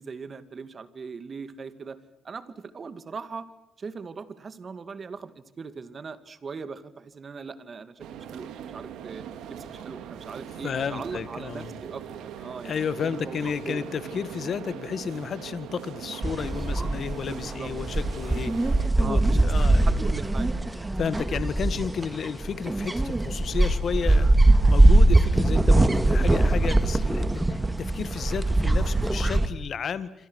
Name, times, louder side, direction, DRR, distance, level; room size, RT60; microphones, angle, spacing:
voice 1, 0.0-2.0 2.2-3.5 3.8-9.2 9.5-13.9 17.0-17.7 19.0-20.6, right 5 dB, 40° right, 12 dB, 2.4 m, -40 dB
sound 1, 8.0-18.9, right 8 dB, 85° right, 2.5 m, -41 dB
voice 2, 10.6-11.7 12.6-20.0 21.0-30.1, left 7 dB, 55° left, 14 dB, 1.7 m, -32 dB
sound 2, 16.2-29.5, right 2 dB, 15° right, 2.0 m, -22 dB
27.0 x 26.5 x 6.5 m, 0.83 s
cardioid pair, 90°, 0 cm